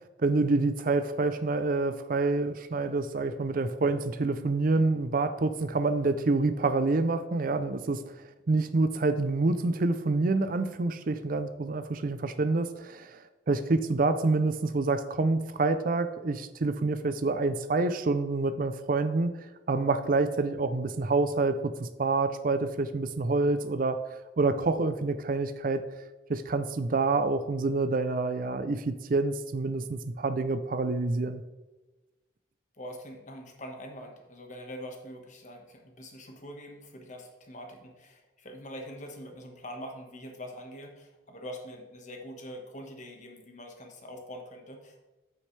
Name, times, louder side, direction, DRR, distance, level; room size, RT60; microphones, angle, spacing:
voice 1, 0.2-25.8 26.3-31.4, right 3 dB, 45° right, 10 dB, 0.5 m, -27 dB
voice 2, 32.7-45.1, equal, 40° left, 3 dB, 1.4 m, -44 dB
8.5 x 8.4 x 3.3 m, 1.1 s
head